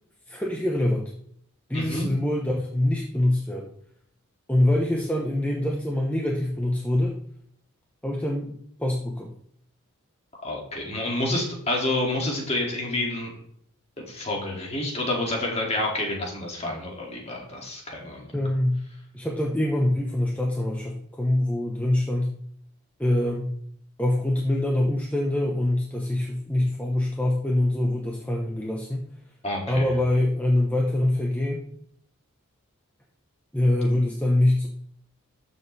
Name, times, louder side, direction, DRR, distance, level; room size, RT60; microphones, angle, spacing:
voice 1, 0.3-1.1 1.7-3.7 4.5-7.2 8.0-8.5 8.8-9.3 18.3-18.8 19.1-22.3 23.0-23.5 24.0-29.1 29.7-31.7 33.5-34.7, left 1 dB, 5° left, -2 dB, 1.0 m, -24 dB
voice 2, 1.7-2.1 10.4-13.3 14.0-18.3 29.4-29.9, left 1 dB, 30° left, -1 dB, 2.5 m, -28 dB
13.0 x 6.8 x 3.4 m, 0.66 s
head